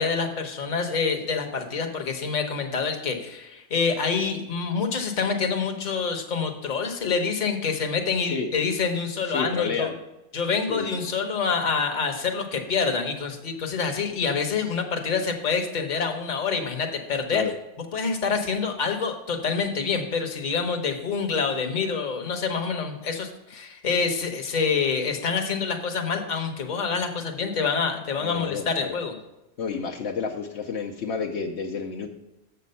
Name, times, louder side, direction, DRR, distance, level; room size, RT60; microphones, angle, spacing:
voice 1, 0.0-9.9 10.3-17.4 17.9-29.1, left 5 dB, 40° left, 4 dB, 1.0 m, -27 dB
voice 2, 9.3-9.9 10.7-11.0 17.3-17.5 28.2-28.9 29.6-32.1, left 5 dB, 70° left, 1 dB, 0.9 m, -30 dB
7.2 x 6.8 x 5.4 m, 0.94 s
omnidirectional pair, 1.2 m